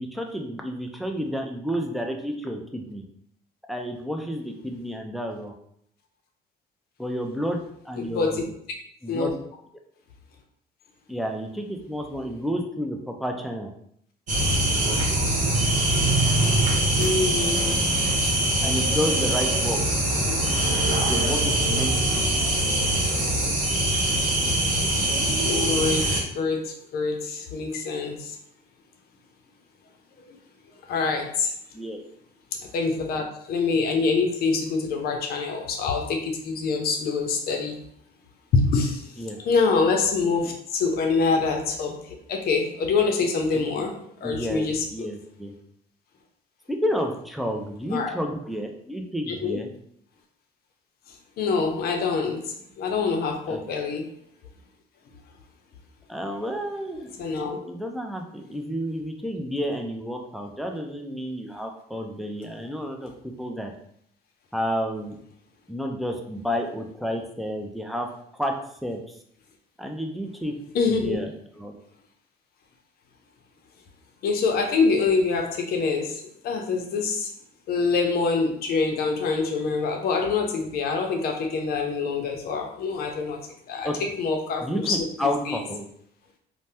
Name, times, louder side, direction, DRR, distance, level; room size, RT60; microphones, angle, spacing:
voice 1, 0.0-3.0 3.7-5.5 7.0-8.5 9.0-9.4 11.1-13.7 18.6-19.8 21.1-22.3 31.7-32.0 39.2-39.4 43.5-43.9 44.2-45.5 46.7-49.7 53.5-53.6 56.1-63.7 64.5-65.2 65.7-68.1 68.4-68.5 68.8-69.0 69.8-70.5 70.9-71.7 83.8-84.0 84.6-85.9, equal, ahead, 2 dB, 0.4 m, -31 dB
voice 2, 8.0-8.4 9.1-9.3 16.9-17.8 18.1-18.5 20.3-20.4 24.6-28.4 30.3-30.4 30.9-31.5 32.5-37.8 38.5-43.9 44.2-45.1 47.9-48.1 49.3-49.6 51.4-54.1 57.2-57.6 70.7-71.2 74.2-77.3 77.7-83.4 83.7-83.9 84.2-85.0 85.5-85.6, left 4 dB, 65° left, 2 dB, 0.6 m, -25 dB
sound 1, 14.3-26.2, right 1 dB, 50° right, 1.0 m, -23 dB
2.7 x 2.1 x 3.3 m, 0.69 s
cardioid pair, 110°, 17 cm